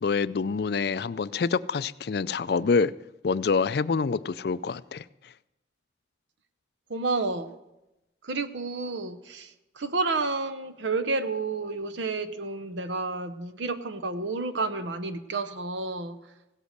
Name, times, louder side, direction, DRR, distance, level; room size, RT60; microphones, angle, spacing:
voice 1, 0.0-2.9 3.2-5.0, left 5 dB, 55° left, 0.4 m, -26 dB
voice 2, 6.9-7.5 8.2-16.2, right 3 dB, 75° right, 0.8 m, -30 dB
16.5 x 8.2 x 6.6 m
head